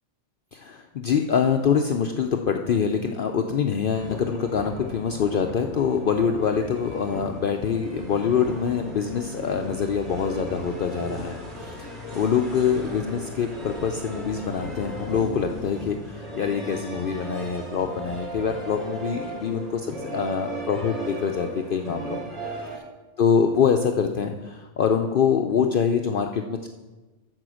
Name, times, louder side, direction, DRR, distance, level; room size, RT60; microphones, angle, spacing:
voice 1, 0.5-22.3 23.2-26.7, left 7 dB, 55° left, 4 dB, 0.7 m, -25 dB
sound 1, 3.9-22.8, right 1 dB, 65° right, 2.4 m, -36 dB
14.0 x 5.0 x 6.2 m, 1.2 s
omnidirectional pair, 1.2 m